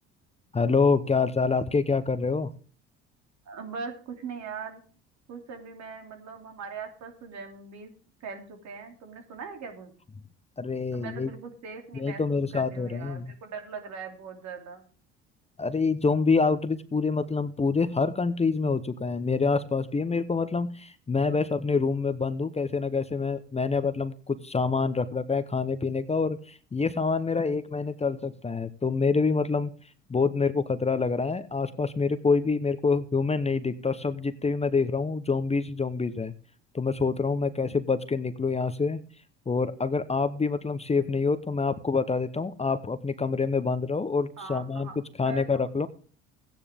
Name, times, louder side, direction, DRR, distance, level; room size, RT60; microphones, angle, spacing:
voice 1, 0.5-2.5 10.6-11.3 11.9-13.3 15.6-29.7 30.1-36.3 36.7-39.0 39.5-44.9 45.2-45.9, left 4 dB, 20° left, 12 dB, 0.9 m, -26 dB
voice 2, 3.4-4.8 5.3-7.9 8.2-9.9 10.9-14.8 44.4-44.9 45.2-45.8, right 5 dB, 60° right, 3 dB, 2.9 m, -40 dB
14.5 x 9.8 x 3.5 m, 0.40 s
hypercardioid pair, 65°, 31 cm